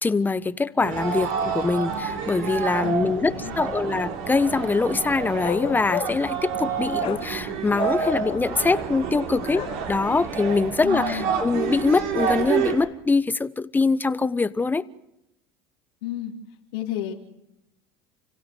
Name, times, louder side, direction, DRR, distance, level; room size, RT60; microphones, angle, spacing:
voice 1, 0.0-14.8, left 3 dB, 15° left, 1.1 m, -23 dB
sound 1, 0.8-12.7, right 7 dB, 70° right, 6.8 m, -29 dB
voice 2, 2.8-3.8 10.8-11.4 16.0-16.3 16.7-17.1, left 12 dB, 80° left, 2.9 m, -32 dB
Bark, 5.4-6.3 7.0-7.3 7.7-8.5 9.5-9.8, left 14 dB, 50° left, 1.0 m, -32 dB
30.0 x 16.5 x 8.4 m
supercardioid pair, 95°, 12 cm